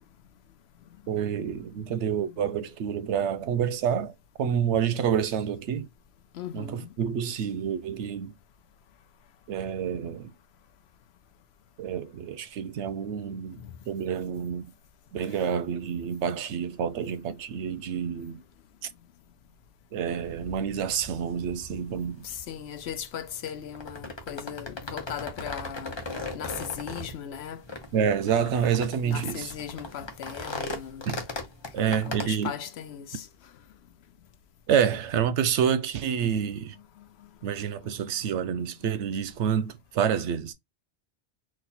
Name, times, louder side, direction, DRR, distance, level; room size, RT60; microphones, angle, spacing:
voice 1, 1.1-4.1 4.4-5.9 6.5-8.3 9.5-10.3 11.8-14.7 15.1-18.4 19.9-22.3 27.9-29.5 31.0-31.2 31.7-32.5 34.7-36.8 37.4-40.5, right 8 dB, 85° right, 0.9 m, -28 dB
voice 2, 6.3-6.9 13.6-13.7 22.2-25.9 26.3-27.6 29.0-31.1 31.8-33.3, left 9 dB, 70° left, 0.8 m, -38 dB
sound 1, 20.1-32.3, left 2 dB, 25° left, 0.8 m, -39 dB
4.1 x 2.4 x 4.1 m
omnidirectional pair, 1.1 m